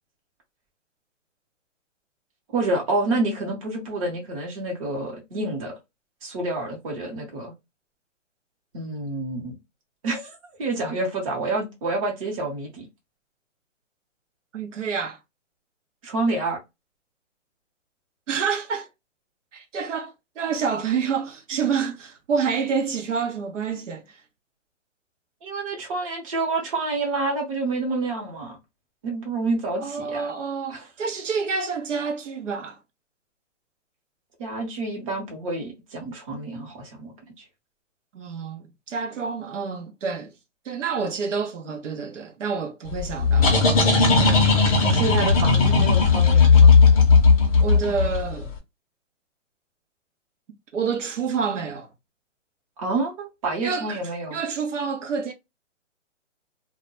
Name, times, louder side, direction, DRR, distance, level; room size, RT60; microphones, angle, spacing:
voice 1, 2.5-5.7 6.2-7.5 8.7-9.6 10.0-10.3 10.6-12.9 16.0-16.6 25.4-28.6 29.0-30.3 30.7-30.8 34.4-37.4 44.1-46.7 52.8-54.4, right 2 dB, 25° right, 0.8 m, -28 dB
voice 2, 14.5-15.2 18.3-18.9 19.5-24.2 29.8-32.8 38.1-40.3 40.6-43.5 47.6-48.5 50.7-51.9 53.6-54.0 54.3-55.3, right 5 dB, 70° right, 0.7 m, -28 dB
sound 1, 42.9-48.4, left 4 dB, 30° left, 0.6 m, -16 dB
2.1 x 2.1 x 2.9 m
hypercardioid pair, 150°, 38 cm